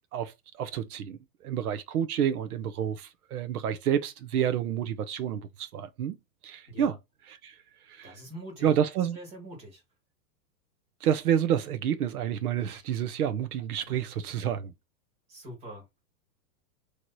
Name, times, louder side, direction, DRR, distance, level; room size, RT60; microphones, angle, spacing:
voice 1, 0.1-6.2 6.4-7.0 7.3-7.6 7.9-8.2 8.6-9.2 11.0-14.7, right 9 dB, 65° right, 0.8 m, -29 dB
voice 2, 8.0-8.7 9.1-9.8 13.9-14.0 15.3-16.0, right 1 dB, 20° right, 1.8 m, -44 dB
3.2 x 3.1 x 4.0 m
supercardioid pair, 180°, 48 cm